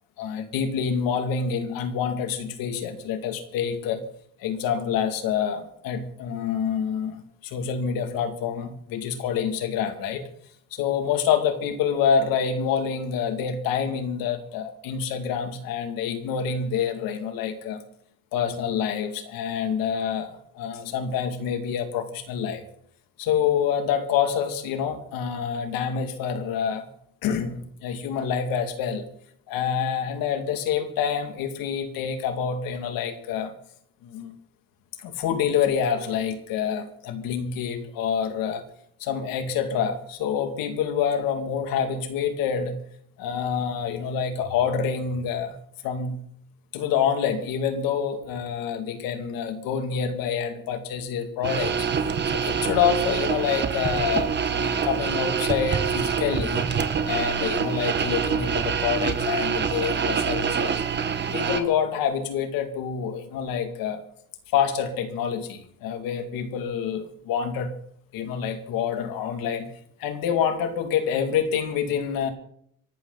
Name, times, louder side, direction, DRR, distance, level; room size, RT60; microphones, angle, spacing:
voice 1, 0.2-4.0 4.4-10.2 10.7-17.8 18.3-22.6 23.2-26.9 27.2-29.1 29.5-33.5 34.1-34.3 35.0-38.6 39.0-42.8 43.2-45.5 45.8-46.2 46.7-51.7 52.4-56.7 57.0-60.8 61.3-64.0 64.5-67.7 68.1-69.7 70.0-72.3, left 7 dB, 80° left, 7 dB, 2.5 m, -27 dB
sound 1, 51.4-61.6, right 6 dB, 30° right, 1.4 m, -26 dB
26.5 x 12.0 x 4.0 m, 0.68 s
cardioid pair, 115°, 34 cm